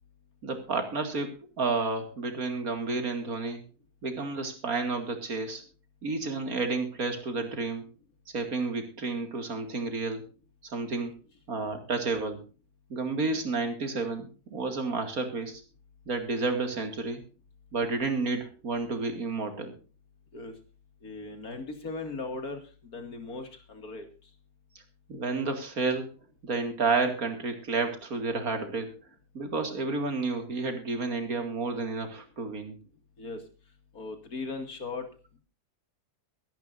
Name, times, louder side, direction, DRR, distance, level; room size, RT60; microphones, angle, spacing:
voice 1, 0.4-3.7 4.0-5.6 6.0-7.8 8.3-10.3 10.6-11.2 11.5-12.4 12.9-15.6 16.1-17.2 17.7-19.7 25.1-26.1 26.4-28.9 29.3-32.8, right 3 dB, 65° right, 6 dB, 2.7 m, -31 dB
voice 2, 21.0-24.1 33.2-33.4 33.9-35.1, left 3 dB, 70° left, 6 dB, 2.8 m, -38 dB
23.0 x 11.0 x 2.6 m, 0.33 s
omnidirectional pair, 1.6 m